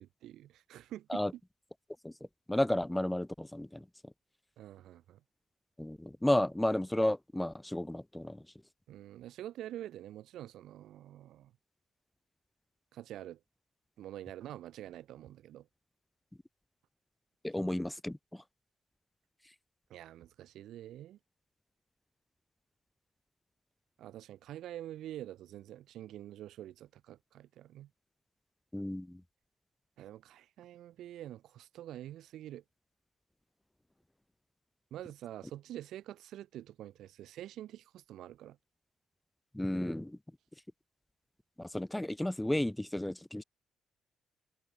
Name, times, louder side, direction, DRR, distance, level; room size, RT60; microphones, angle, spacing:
voice 1, 0.0-1.2 4.6-5.2 8.9-11.5 12.9-13.4 14.0-15.7 19.9-21.2 24.0-27.9 30.0-32.6 34.9-38.6, right 12 dB, 80° right, 0.8 m, -46 dB
voice 2, 2.5-3.8 5.8-8.4 17.4-18.4 28.7-29.2 39.5-40.2 41.6-43.4, left 1 dB, 5° left, 0.3 m, -32 dB
cardioid pair, 90°, 0 cm